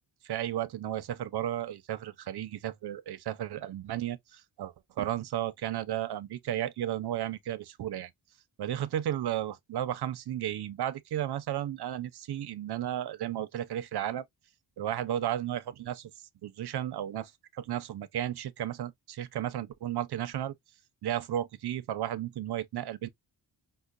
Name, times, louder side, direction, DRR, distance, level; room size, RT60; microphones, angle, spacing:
voice 1, 0.2-8.1 8.6-14.2 14.8-16.1 16.4-20.5 21.0-23.1, right 11 dB, 60° right, 0.6 m, -34 dB
5.4 x 2.1 x 2.4 m
wide cardioid pair, 155°, 44 cm